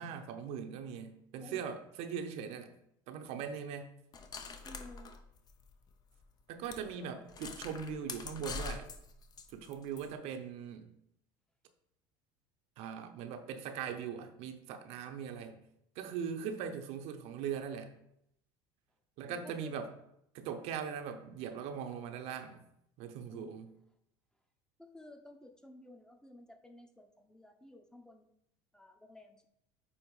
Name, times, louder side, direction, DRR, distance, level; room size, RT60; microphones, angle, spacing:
voice 1, 0.0-2.7 3.1-4.0 6.5-8.9 9.5-10.9 12.8-15.6 16.0-18.0 19.2-19.9 20.3-22.6 23.0-23.7, right 7 dB, 65° right, 0.8 m, -40 dB
sound 1, 4.1-5.9 6.2-6.3 6.6-6.8 7.3-10.1, left 4 dB, 35° left, 0.8 m, -44 dB
voice 2, 4.6-5.2 6.8-7.2 19.3-19.8 23.3-23.6 24.8-28.3 28.7-29.5, left 1 dB, 5° left, 0.9 m, -54 dB
8.7 x 2.9 x 4.8 m
supercardioid pair, 100°, 11 cm